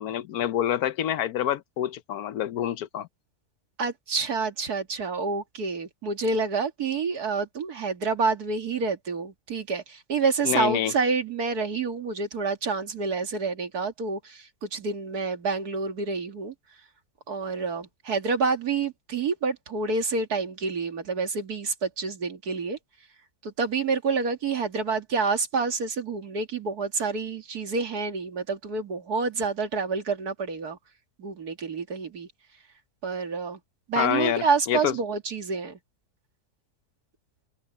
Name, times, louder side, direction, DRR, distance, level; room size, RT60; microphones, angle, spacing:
voice 1, 0.0-3.1 10.4-10.9 34.0-34.9, left 11 dB, 75° left, 1.2 m, -27 dB
voice 2, 3.8-16.5 17.3-22.8 23.4-30.8 31.2-32.3 33.0-33.6 33.9-35.8, right 4 dB, 75° right, 2.5 m, -28 dB
open air
omnidirectional pair, 1.6 m